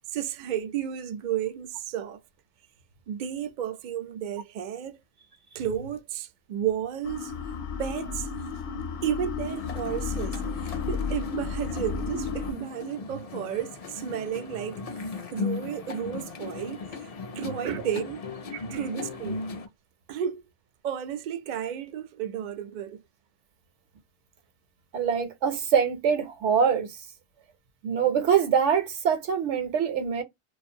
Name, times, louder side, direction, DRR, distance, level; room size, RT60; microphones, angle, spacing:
voice 1, 0.1-2.2 3.1-5.0 5.5-7.3 7.8-8.3 9.0-14.8 15.3-16.8 17.4-18.3 18.7-19.4 20.1-20.4 20.8-23.0, right 9 dB, 60° right, 0.5 m, -32 dB
sound 1, 7.0-12.5, left 5 dB, 70° left, 0.8 m, -33 dB
sound 2, 9.5-19.7, left 4 dB, 50° left, 0.4 m, -37 dB
voice 2, 18.5-18.8 24.9-27.0 27.8-30.2, right 7 dB, 75° right, 1.0 m, -24 dB
2.5 x 2.4 x 2.6 m
omnidirectional pair, 1.2 m